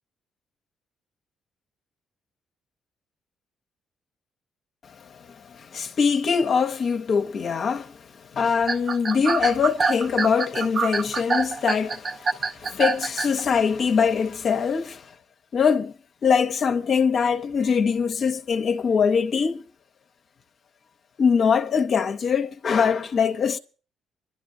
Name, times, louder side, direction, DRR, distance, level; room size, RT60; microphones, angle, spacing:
voice 1, 4.9-8.0 8.3-15.1 15.5-15.9 16.2-19.6 21.2-23.6, left 6 dB, 55° left, 0.6 m, -23 dB
sound 1, 8.6-13.4, right 4 dB, 45° right, 0.6 m, -25 dB
26.5 x 11.5 x 2.6 m
cardioid pair, 90°, 0 cm